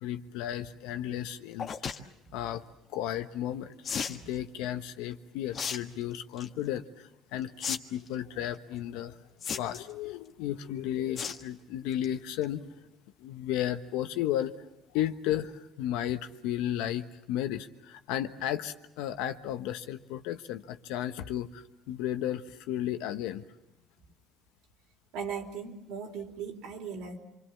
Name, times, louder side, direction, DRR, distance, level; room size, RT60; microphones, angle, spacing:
voice 1, 0.0-2.0 2.3-2.6 2.9-9.2 9.5-12.7 13.2-14.5 14.9-23.5, left 11 dB, 80° left, 9 dB, 1.2 m, -34 dB
sound 1, 1.6-2.0 3.8-4.2 5.5-5.8 6.1-6.5 7.6-7.8 8.1-8.2 9.4-9.9 11.2-11.4 11.8-12.0 12.4-12.5 12.7-12.8, left 6 dB, 50° left, 1.6 m, -34 dB
voice 2, 25.1-27.2, right 6 dB, 75° right, 3 dB, 3.7 m, -38 dB
27.0 x 24.5 x 7.2 m, 0.89 s
supercardioid pair, 80°, 0 cm